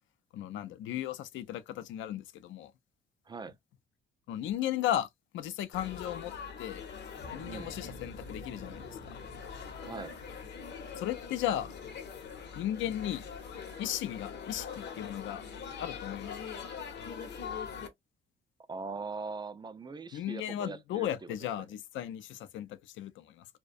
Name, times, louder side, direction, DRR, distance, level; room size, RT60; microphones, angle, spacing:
voice 1, 0.3-2.7 4.3-5.1 5.3-6.3 6.6-6.8 7.3-9.2 11.0-11.7 12.6-13.2 13.8-15.4 15.8-16.3 20.1-23.5, left 12 dB, 75° left, 0.4 m, -35 dB
Laughter / Chatter / Crowd, 5.7-17.9, left 6 dB, 60° left, 0.8 m, -43 dB
sound 1, 7.2-12.1, right 5 dB, 70° right, 0.6 m, -54 dB
voice 2, 9.8-10.2 18.7-21.4, right 4 dB, 20° right, 0.3 m, -41 dB
2.4 x 2.1 x 2.4 m
cardioid pair, 90°, 20 cm